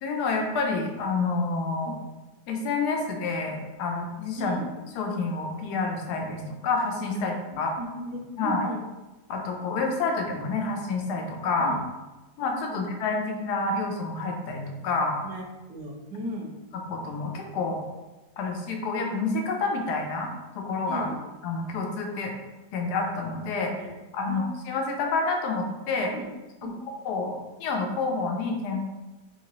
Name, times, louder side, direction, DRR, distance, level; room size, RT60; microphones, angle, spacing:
voice 1, 0.0-1.9 2.5-4.6 5.0-7.7 8.4-8.7 9.3-11.7 12.4-15.2 16.9-17.8 18.4-21.1 21.4-22.3 22.7-23.7 24.1-26.1 27.0-28.8, left 3 dB, 80° left, 2 dB, 1.2 m, -28 dB
voice 2, 7.5-8.8 11.6-11.8 12.7-12.8 15.2-16.5 20.9-21.2 23.8-23.9 24.2-24.4 26.1-26.3 26.6-26.8, right 1 dB, 80° right, 0 dB, 1.2 m, -36 dB
3.6 x 2.8 x 2.9 m, 1.1 s
omnidirectional pair, 1.7 m